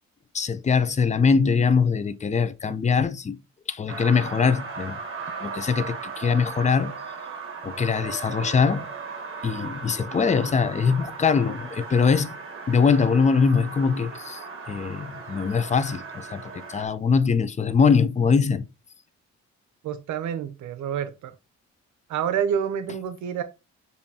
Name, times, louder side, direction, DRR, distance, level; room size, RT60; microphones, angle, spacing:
voice 1, 0.3-3.4 3.7-5.0 5.4-6.9 7.6-8.9 9.4-12.3 12.7-14.4 14.7-18.6, left 5 dB, 25° left, 0.5 m, -22 dB
sound 1, 3.9-16.9, right 5 dB, 45° right, 1.3 m, -37 dB
voice 2, 19.8-21.3 22.1-23.4, right 8 dB, 75° right, 0.6 m, -28 dB
6.9 x 2.7 x 2.8 m
cardioid pair, 90°, 30 cm